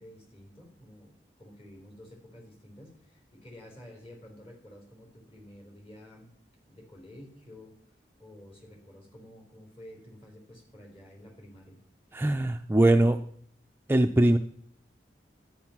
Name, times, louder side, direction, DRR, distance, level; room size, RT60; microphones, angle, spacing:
voice 1, 0.0-6.3 6.7-7.8 8.2-11.8, left 1 dB, 30° left, 1 dB, 4.3 m, -50 dB
voice 2, 12.1-13.2 13.9-14.4, right 1 dB, 10° right, 6 dB, 0.4 m, -21 dB
13.0 x 10.0 x 5.9 m, 0.63 s
head